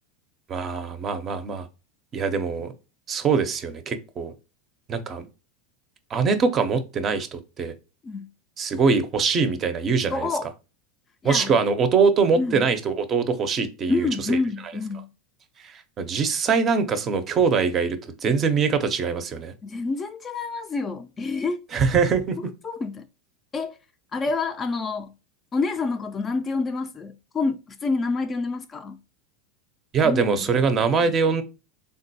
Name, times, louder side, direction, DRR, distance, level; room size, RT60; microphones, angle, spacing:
voice 1, 0.5-1.7 2.1-2.7 3.1-4.3 4.9-5.3 6.1-7.7 8.6-10.3 11.2-14.4 15.6-19.5 21.7-22.5 29.9-31.4, right 5 dB, 30° right, 0.5 m, -23 dB
voice 2, 10.1-10.5 11.2-11.5 12.4-12.7 13.9-15.1 19.6-21.6 22.4-23.0 23.5-23.8 24.1-25.1 25.5-29.0 30.0-30.5 31.0-31.1, left 3 dB, 25° left, 0.3 m, -28 dB
3.6 x 2.2 x 2.7 m
supercardioid pair, 120°, 0 cm